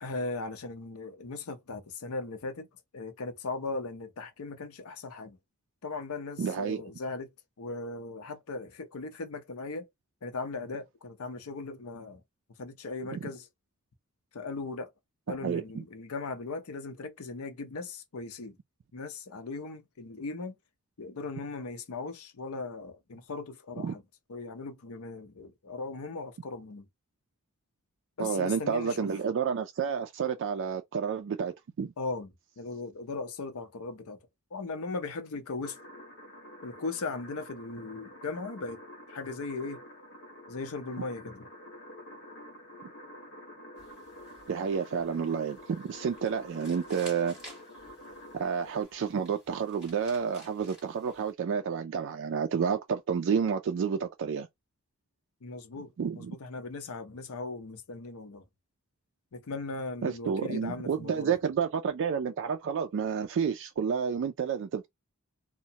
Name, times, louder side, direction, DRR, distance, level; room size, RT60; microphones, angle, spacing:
voice 1, 0.0-2.7 2.9-5.4 5.8-7.3 7.6-9.9 10.2-12.2 12.6-13.5 14.3-14.9 15.3-18.6 18.9-20.5 21.0-24.0 24.3-26.9 28.2-29.1 32.0-32.3 32.6-34.2 34.5-35.8 36.6-38.8 39.1-39.8 40.5-41.5 55.4-58.4 59.3-61.3, left 3 dB, 75° left, 0.6 m, -38 dB
voice 2, 6.4-6.8 13.1-13.2 15.3-15.8 23.8-23.9 28.2-31.9 44.5-47.4 48.3-54.5 56.0-56.3 60.0-64.9, right 6 dB, 55° right, 0.3 m, -30 dB
sound 1, 35.6-48.8, equal, 60° left, 1.0 m, -48 dB
sound 2, 43.8-51.3, equal, 5° right, 1.7 m, -54 dB
2.8 x 2.1 x 2.7 m
head